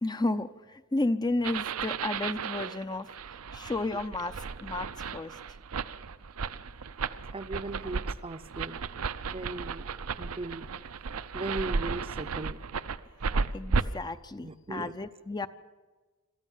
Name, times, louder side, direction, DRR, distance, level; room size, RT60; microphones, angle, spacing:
voice 1, 0.0-3.1 3.5-5.4 13.5-15.5, left 2 dB, 20° left, 11 dB, 0.5 m, -32 dB
sound 1, 1.4-13.8, right 5 dB, 70° right, 0.6 m, -34 dB
voice 2, 7.3-8.8 9.3-9.9 10.2-10.7 11.3-12.6 14.4-14.9, right 2 dB, 25° right, 11 dB, 0.6 m, -37 dB
26.5 x 14.0 x 7.3 m, 1.3 s
head